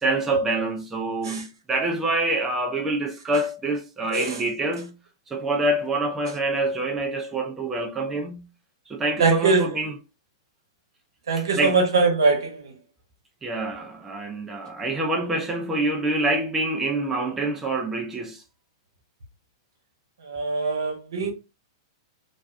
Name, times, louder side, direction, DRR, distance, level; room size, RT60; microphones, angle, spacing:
voice 1, 0.0-4.9 5.3-8.4 8.9-9.9 11.6-11.8 13.4-18.4, right 2 dB, 15° right, 0.5 m, -26 dB
voice 2, 9.2-9.7 11.3-12.7 20.2-21.3, right 4 dB, 80° right, 0.9 m, -22 dB
2.5 x 2.2 x 2.4 m
hypercardioid pair, 120°, 2 cm